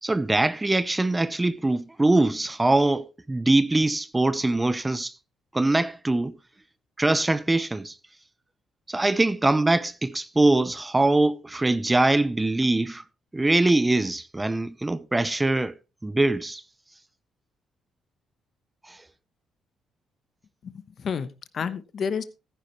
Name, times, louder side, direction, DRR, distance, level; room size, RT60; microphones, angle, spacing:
voice 1, 0.0-5.1 5.5-6.4 7.0-8.0 8.9-13.0 13.3-15.8 16.0-16.6 18.9-19.0, right 2 dB, 15° right, 0.7 m, -23 dB
voice 2, 20.6-22.2, left 6 dB, 55° left, 1.0 m, -31 dB
14.5 x 10.0 x 3.1 m
cardioid pair, 90°, 0 cm